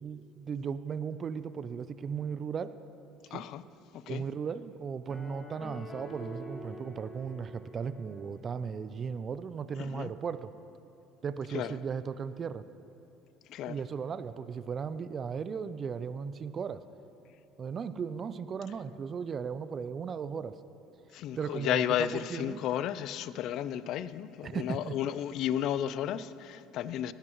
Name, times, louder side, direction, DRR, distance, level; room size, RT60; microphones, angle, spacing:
voice 1, 0.0-2.8 3.3-3.4 4.1-10.5 11.2-12.6 13.7-16.8 17.6-20.6 21.4-22.6 24.4-25.0, right 6 dB, 40° right, 0.4 m, -36 dB
voice 2, 3.3-3.6 3.9-4.2 9.8-10.1 11.5-11.8 13.5-13.8 21.1-27.1, left 10 dB, 65° left, 0.4 m, -33 dB
sound 1, 5.1-8.3, equal, 15° left, 2.2 m, -46 dB
19.5 x 12.5 x 3.0 m
supercardioid pair, 90°, 0 cm